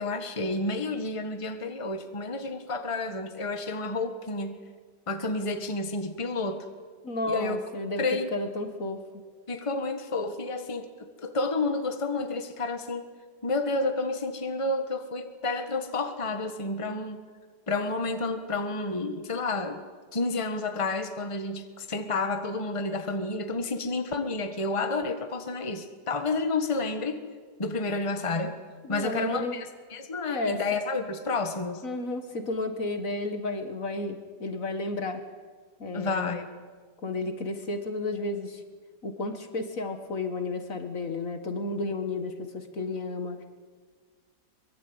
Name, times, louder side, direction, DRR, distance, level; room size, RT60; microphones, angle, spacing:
voice 1, 0.0-4.6 5.1-6.7 7.3-7.6 8.0-8.3 9.5-13.1 13.4-17.2 17.7-19.8 20.1-27.2 27.6-28.6 28.9-31.8 35.9-36.5, left 3 dB, 20° left, 7 dB, 1.5 m, -30 dB
voice 2, 7.0-8.0 8.3-9.0 28.8-29.6 30.3-30.6 31.8-35.2 35.8-36.3 37.0-38.6 39.0-43.4, left 2 dB, 55° left, 7 dB, 2.0 m, -32 dB
24.0 x 22.0 x 8.9 m, 1.5 s
omnidirectional pair, 1.8 m